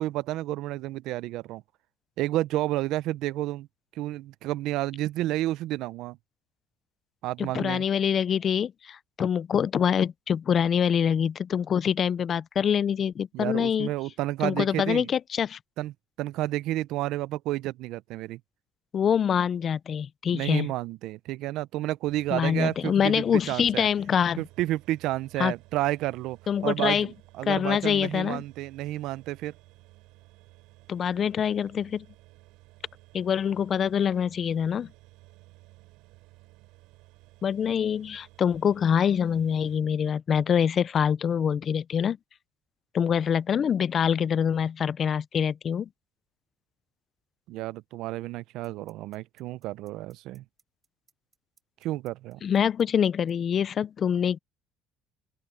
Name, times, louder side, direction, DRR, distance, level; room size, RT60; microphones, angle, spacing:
voice 1, 0.0-1.6 2.2-3.7 3.9-6.2 7.2-7.8 13.3-15.1 15.8-18.4 20.3-23.9 24.4-26.4 26.6-29.5 47.5-50.4 51.8-52.4, right 16 dB, 65° right, 0.5 m, -31 dB
voice 2, 7.4-13.9 14.4-15.6 18.9-20.7 22.3-24.4 25.4-25.5 26.5-27.1 27.5-28.4 30.9-32.1 33.1-34.9 37.4-42.2 42.9-45.9 52.4-54.4, left 8 dB, 35° left, 0.4 m, -25 dB
sound 1, 22.0-39.8, right 21 dB, 85° right, 6.6 m, -55 dB
sound 2, 47.5-47.6 48.6-53.3, right 5 dB, 20° right, 7.5 m, -64 dB
open air
cardioid pair, 160°, 0 cm